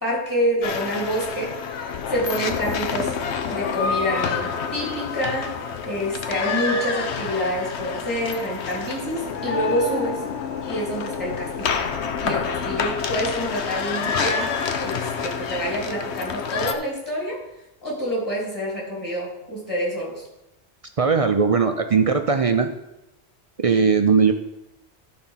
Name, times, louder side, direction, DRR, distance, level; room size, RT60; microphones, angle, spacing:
voice 1, 0.0-3.1 3.5-10.2 10.7-11.8 12.2-14.5 14.8-17.4 17.8-20.2, equal, 15° left, -4 dB, 3.1 m, -27 dB
sound 1, 0.6-16.7, left 6 dB, 75° left, 1.0 m, -28 dB
voice 2, 21.0-22.7 23.6-24.3, right 5 dB, 45° right, 7 dB, 0.4 m, -19 dB
11.5 x 4.3 x 5.7 m, 0.91 s
omnidirectional pair, 1.1 m